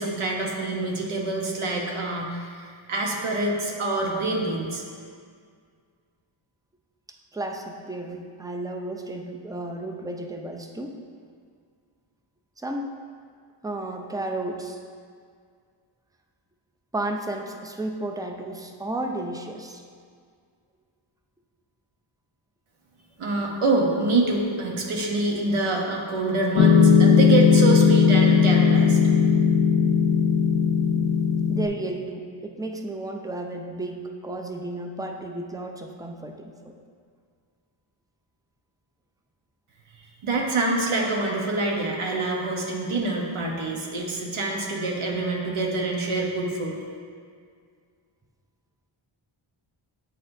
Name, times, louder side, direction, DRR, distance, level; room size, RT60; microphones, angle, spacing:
voice 1, 0.0-4.8 23.2-29.2 40.2-46.8, right 2 dB, 80° right, -1 dB, 0.9 m, -26 dB
voice 2, 7.3-11.0 12.6-12.9 13.6-14.8 16.9-19.8 31.5-36.7, right 2 dB, 10° right, 3 dB, 0.4 m, -33 dB
Piano, 26.6-31.7, left 6 dB, 85° left, 0.6 m, -18 dB
9.0 x 4.2 x 2.6 m, 2.1 s
wide cardioid pair, 95°, 50 cm